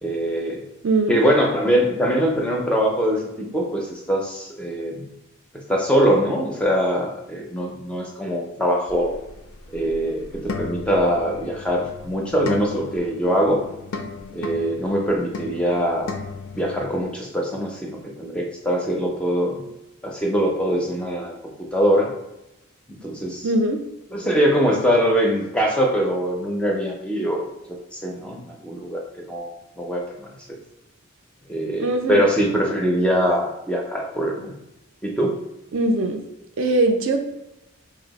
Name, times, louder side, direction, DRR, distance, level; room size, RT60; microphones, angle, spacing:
voice 1, 0.0-0.6 1.1-5.1 5.5-9.2 9.7-13.6 14.3-16.1 16.5-19.7 20.0-21.3 21.6-22.1 22.9-23.5 24.1-30.3 31.5-34.5 35.0-35.4, equal, 5° left, 0 dB, 0.4 m, -23 dB
voice 2, 0.8-1.2 23.4-23.8 31.8-32.2 35.7-36.2 36.6-37.2, right 2 dB, 60° right, 4 dB, 0.4 m, -21 dB
sound 1, 8.9-17.0, left 3 dB, 70° left, 0.4 m, -36 dB
2.7 x 2.5 x 4.0 m, 0.93 s
head